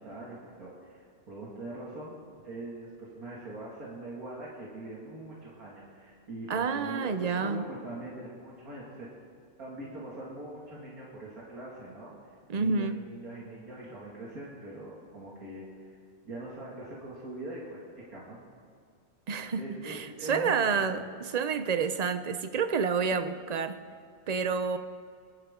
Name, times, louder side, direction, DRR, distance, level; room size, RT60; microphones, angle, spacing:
voice 1, 0.0-2.1 2.4-9.1 9.6-12.1 12.5-16.0 16.2-17.8 18.1-18.4 19.6-21.0, right 2 dB, 90° right, -6 dB, 2.7 m, -42 dB
voice 2, 6.5-7.7 12.5-13.0 19.3-23.8 24.3-24.8, right 5 dB, 70° right, 9 dB, 0.4 m, -29 dB
25.0 x 11.5 x 3.7 m, 2.2 s
omnidirectional pair, 1.5 m